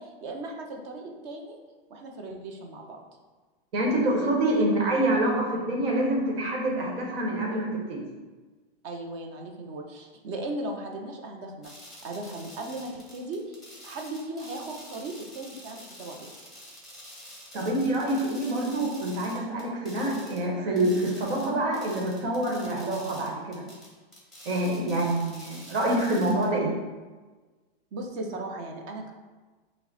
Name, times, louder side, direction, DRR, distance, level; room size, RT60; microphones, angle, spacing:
voice 1, 0.0-1.6 1.9-3.0 4.5-4.7 8.8-11.7 12.0-16.3 27.9-29.1, right 2 dB, 30° right, 2 dB, 0.5 m, -37 dB
voice 2, 3.7-8.0 17.5-23.6 24.4-26.7, right 1 dB, 70° right, -2 dB, 1.2 m, -26 dB
sound 1, 11.6-20.5 20.8-26.5, equal, ahead, 0.9 m, -48 dB
5.6 x 2.1 x 4.0 m, 1.3 s
hypercardioid pair, 150°, 31 cm